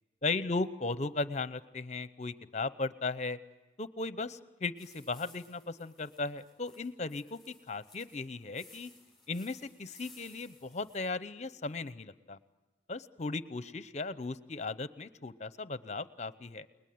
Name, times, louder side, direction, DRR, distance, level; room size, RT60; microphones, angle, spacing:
voice 1, 0.2-3.4 3.8-8.9 9.3-12.4 12.9-16.7, left 3 dB, 40° left, 14 dB, 0.8 m, -36 dB
sound 1, 4.8-11.1, left 3 dB, ahead, 7.6 m, -59 dB
29.5 x 20.5 x 9.4 m, 1.1 s
head